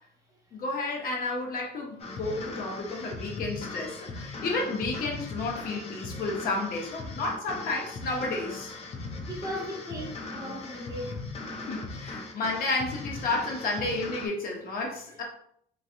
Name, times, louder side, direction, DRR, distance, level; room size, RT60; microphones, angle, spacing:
voice 1, 0.6-8.7 11.7-15.2, left 3 dB, 60° left, 0.9 m, -31 dB
sound 1, 2.0-14.3, left 3 dB, 35° left, 0.5 m, -39 dB
voice 2, 9.3-11.2, equal, 20° right, 0.8 m, -37 dB
3.1 x 2.6 x 2.6 m
cardioid pair, 110°, 17 cm